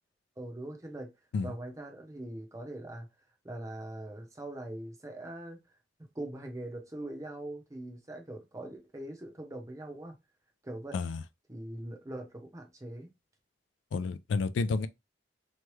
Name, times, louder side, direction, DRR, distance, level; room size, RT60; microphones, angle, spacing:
voice 1, 0.4-1.1 1.4-3.1 3.4-5.6 6.1-10.1 10.6-11.0 11.5-13.1, right 1 dB, 15° right, 0.6 m, -42 dB
voice 2, 13.9-14.9, left 4 dB, 90° left, 0.3 m, -30 dB
3.0 x 2.2 x 3.1 m
head